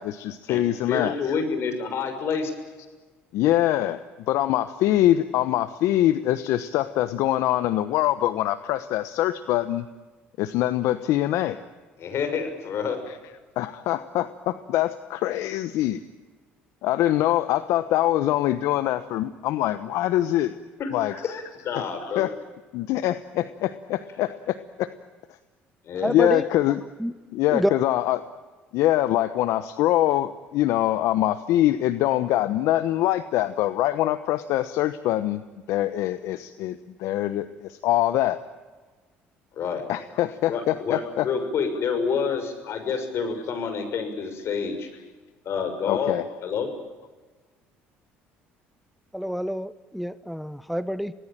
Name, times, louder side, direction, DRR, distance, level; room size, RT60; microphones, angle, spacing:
voice 1, 0.0-1.4 3.3-4.0 4.3-9.9 10.4-11.6 13.1-16.0 16.8-20.5 20.9-21.1 21.6-22.3 22.7-24.9 26.0-26.8 27.3-28.2 28.7-35.4 35.7-38.4 39.9-41.5 42.3-42.4 42.7-42.8 43.3-43.4 44.4-44.5 45.9-46.2, left 14 dB, 70° left, 12 dB, 1.0 m, -24 dB
voice 2, 0.9-2.5 12.0-13.0 20.8-20.9 21.2-22.2 25.8-26.1 39.5-39.8 40.5-44.9 45.4-46.2 46.4-46.7, left 6 dB, 55° left, 8 dB, 6.5 m, -28 dB
voice 3, 25.9-26.4 27.0-27.1 27.5-27.8 49.1-51.1, equal, ahead, 14 dB, 1.0 m, -27 dB
27.0 x 19.0 x 9.0 m, 1.3 s
supercardioid pair, 75°, 5 cm